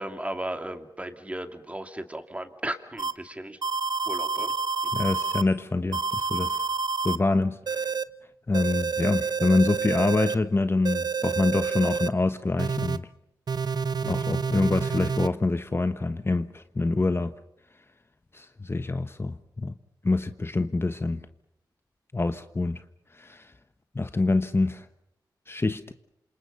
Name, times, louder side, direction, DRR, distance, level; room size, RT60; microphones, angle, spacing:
voice 1, 0.0-3.6 4.1-4.5, right 1 dB, 15° right, 2.6 m, -35 dB
sound 1, 3.0-3.1 3.6-5.4 5.9-7.2 7.7-8.0 8.5-10.4 10.9-12.1 12.6-13.0 13.5-15.3, right 5 dB, 60° right, 1.0 m, -28 dB
voice 2, 4.9-6.6 7.0-7.9 8.5-13.1 14.0-17.3 18.3-19.7 20.0-21.2 22.1-22.8 23.1-23.5 23.9-24.9 25.5-25.9, left 3 dB, 30° left, 1.3 m, -26 dB
28.5 x 27.0 x 5.7 m
cardioid pair, 60°, 8 cm